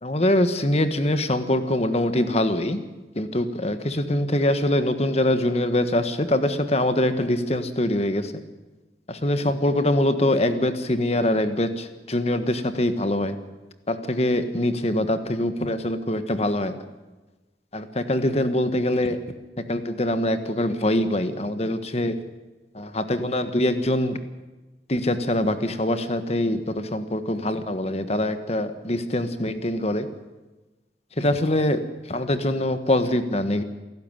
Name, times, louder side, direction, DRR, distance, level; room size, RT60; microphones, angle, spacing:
voice 1, 0.0-2.8 3.1-8.3 9.1-13.4 13.9-16.8 17.7-19.2 19.6-22.2 22.7-24.2 24.9-30.1 31.2-33.6, left 1 dB, 35° left, 10 dB, 1.5 m, -24 dB
27.5 x 12.0 x 9.1 m, 1.2 s
head